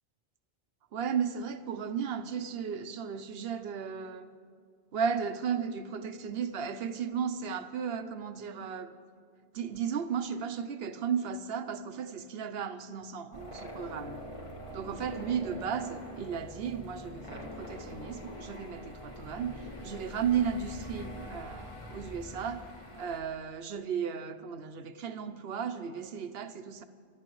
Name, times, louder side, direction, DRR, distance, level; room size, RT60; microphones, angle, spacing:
voice 1, 0.9-4.3 4.9-8.9 9.5-14.2 14.7-22.7 23.0-26.8, right 7 dB, 75° right, 10 dB, 0.9 m, -35 dB
sound 1, 13.3-23.2, equal, 30° left, 1.6 m, -44 dB
25.0 x 13.5 x 3.1 m, 2.1 s
omnidirectional pair, 1.0 m